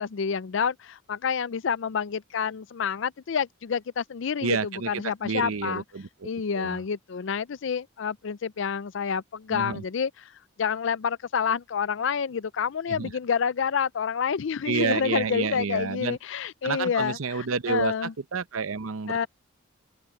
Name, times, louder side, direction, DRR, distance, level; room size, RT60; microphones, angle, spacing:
voice 1, 0.0-5.8 6.2-10.3 10.6-18.1 19.1-19.3, left 6 dB, 60° left, 0.4 m, -28 dB
voice 2, 4.4-6.3 6.5-6.8 9.5-9.8 12.9-13.1 14.6-16.2 16.6-19.3, right 5 dB, 90° right, 0.8 m, -29 dB
open air
head